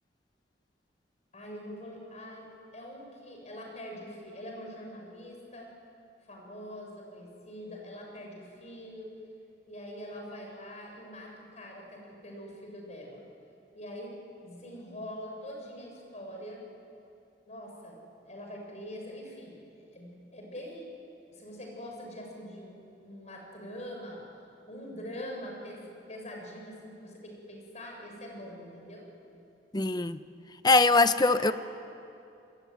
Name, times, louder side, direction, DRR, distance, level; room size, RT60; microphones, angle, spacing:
voice 1, 1.3-2.5 2.7-5.7 6.2-9.1 9.7-13.3 13.7-16.6 17.5-18.0 18.3-20.9 21.3-24.3 24.7-29.1 31.3-31.5, equal, 40° left, 0 dB, 7.2 m, -44 dB
voice 2, 29.7-30.2 30.6-31.5, left 3 dB, 25° left, 11 dB, 0.9 m, -22 dB
28.0 x 22.0 x 9.6 m, 2.7 s
head